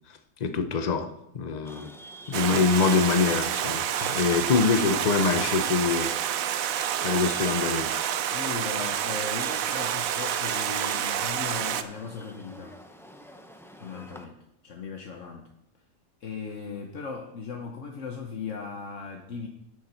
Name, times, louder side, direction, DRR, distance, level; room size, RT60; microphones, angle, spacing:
voice 1, 0.4-1.1 1.3-1.9 2.3-6.1 7.0-7.9, left 5 dB, 40° left, 9 dB, 0.8 m, -24 dB
Chatter / Vehicle horn car horn honking / Traffic noise roadway noise, 1.6-14.2, left 1 dB, 5° left, 0.5 m, -46 dB
Stream, 2.3-11.8, right 10 dB, 80° right, 1.1 m, -28 dB
voice 2, 8.3-12.8 13.8-15.5 16.2-19.5, left 5 dB, 65° left, 2 dB, 1.2 m, -37 dB
13.0 x 6.8 x 4.4 m, 0.80 s
omnidirectional pair, 1.4 m